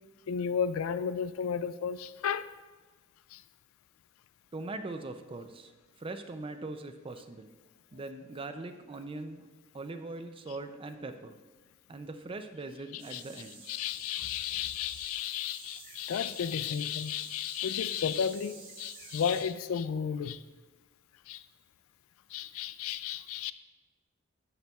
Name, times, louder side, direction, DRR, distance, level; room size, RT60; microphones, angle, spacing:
voice 1, 0.3-2.5 3.3-3.4 12.9-13.2 13.7-20.4 21.3-21.4 22.3-23.5, left 8 dB, 90° left, 0.3 m, -33 dB
voice 2, 4.5-5.7 6.0-7.5 7.9-11.4 11.9-13.6, right 2 dB, 25° right, 0.4 m, -41 dB
sound 1, 13.0-19.4, right 4 dB, 65° right, 1.3 m, -50 dB
10.0 x 6.7 x 2.4 m
head